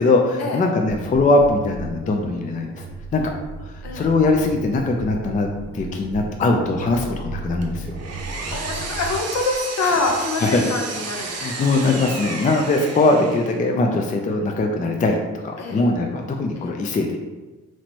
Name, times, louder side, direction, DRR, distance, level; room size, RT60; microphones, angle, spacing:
voice 1, 0.0-2.9 3.1-3.3 3.9-5.5 5.7-8.0 9.8-10.0 10.4-10.6 11.2-15.2 15.4-17.2, left 2 dB, 25° left, 3 dB, 0.4 m, -21 dB
sound 1, 0.8-9.7, right 2 dB, 20° right, 0.8 m, -35 dB
Power tool, 7.6-13.7, right 4 dB, 55° right, 0.7 m, -32 dB
voice 2, 8.5-11.7 15.6-15.8, left 3 dB, 60° left, 2 dB, 0.8 m, -25 dB
3.0 x 2.9 x 4.3 m, 1.2 s
cardioid pair, 90°, 30 cm